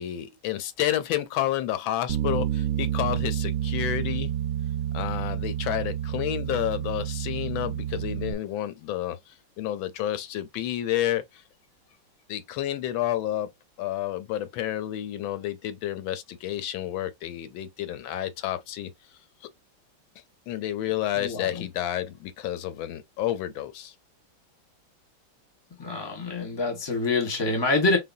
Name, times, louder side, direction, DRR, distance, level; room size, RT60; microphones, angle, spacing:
voice 1, 0.0-4.3 4.9-11.4 12.3-13.5 13.8-18.9 20.5-23.9, left 12 dB, 80° left, 1.4 m, -30 dB
Bass guitar, 2.1-8.3, right 11 dB, 75° right, 1.0 m, -29 dB
voice 2, 21.1-21.6 25.8-28.0, left 3 dB, 15° left, 1.1 m, -26 dB
3.9 x 3.6 x 2.7 m
omnidirectional pair, 2.2 m